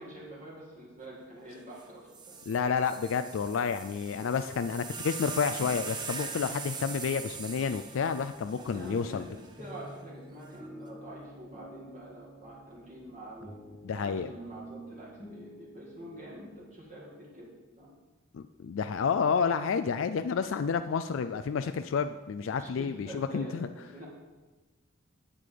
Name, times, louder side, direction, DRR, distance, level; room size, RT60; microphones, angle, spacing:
voice 1, 0.0-2.3 8.6-13.5 13.9-17.5 17.8-17.9 22.6-24.1, right 1 dB, 40° right, -5 dB, 2.1 m, -46 dB
sound 1, 1.8-1.9 2.1-9.5 10.4-10.9, right 5 dB, 20° right, 0.8 m, -41 dB
voice 2, 2.5-9.2 13.8-14.3 18.3-23.7, left 6 dB, 75° left, 9 dB, 0.4 m, -30 dB
sound 2, 5.6-16.7, right 1 dB, 5° left, 1.7 m, -50 dB
9.9 x 7.6 x 5.1 m, 1.2 s
head